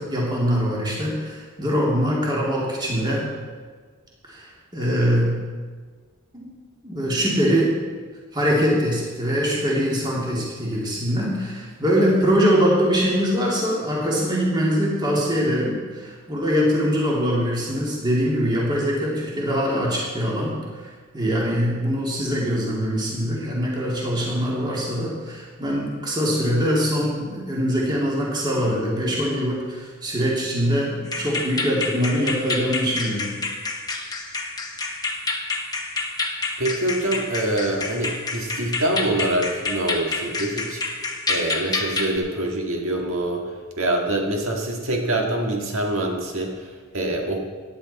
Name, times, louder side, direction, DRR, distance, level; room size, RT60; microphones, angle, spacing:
voice 1, 0.0-3.3 4.3-5.4 6.3-6.5 6.8-7.8 8.3-20.6 21.1-33.3, equal, 20° right, -5 dB, 2.5 m, -23 dB
sound 1, 31.1-42.2, left 3 dB, 15° left, 1.1 m, -28 dB
voice 2, 36.6-40.8 41.3-43.4 43.8-47.4, right 1 dB, 60° right, 1 dB, 1.9 m, -25 dB
14.5 x 10.0 x 4.2 m, 1.5 s
head